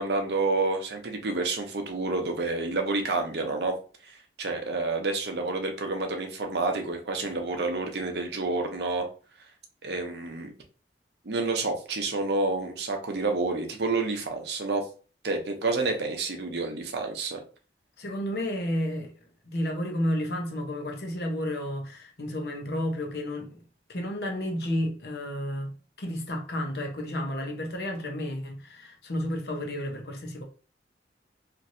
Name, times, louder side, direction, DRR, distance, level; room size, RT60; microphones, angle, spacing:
voice 1, 0.0-3.7 4.1-9.1 9.8-10.5 11.2-14.9 15.2-17.4, right 3 dB, 70° right, 0.7 m, -29 dB
voice 2, 18.0-19.1 19.5-23.6 23.9-25.7 26.0-30.4, left 1 dB, 65° left, 0.8 m, -31 dB
3.0 x 2.6 x 2.6 m
head